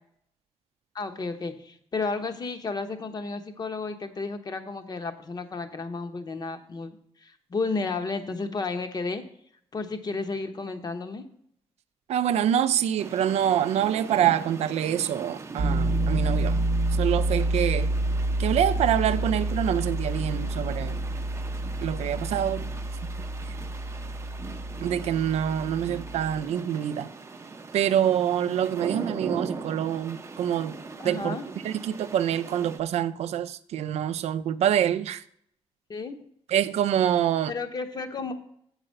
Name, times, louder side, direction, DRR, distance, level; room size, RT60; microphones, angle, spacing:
voice 1, 0.9-9.2 9.7-11.2 31.0-31.5 35.9-36.2 37.5-38.3, left 3 dB, 40° left, 0.9 m, -32 dB
voice 2, 12.1-16.6 17.0-17.9 18.4-21.0 21.8-22.7 24.8-27.1 27.7-30.8 31.0-31.4 31.6-35.2 36.5-37.5, right 10 dB, 90° right, 0.4 m, -26 dB
sound 1, 13.0-32.8, right 3 dB, 25° right, 0.6 m, -40 dB
Piano, 15.6-26.4, right 2 dB, 65° right, 0.8 m, -28 dB
7.8 x 4.9 x 6.4 m
cardioid pair, 110°, 11 cm